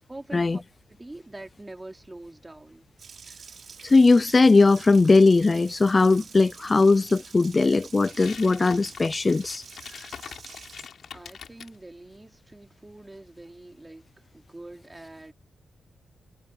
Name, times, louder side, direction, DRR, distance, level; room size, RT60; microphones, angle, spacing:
voice 1, 0.1-0.6 0.9-2.9 11.1-14.1 14.3-15.3, right 2 dB, 15° right, 3.2 m, -44 dB
Water tap faucet, 3.0-10.9, right 6 dB, 60° right, 6.1 m, -47 dB
voice 2, 3.8-9.6 10.0-10.1, left 3 dB, 30° left, 0.3 m, -19 dB
sound 1, 8.0-11.7, left 7 dB, 70° left, 6.4 m, -43 dB
cardioid pair, 85°, 0 cm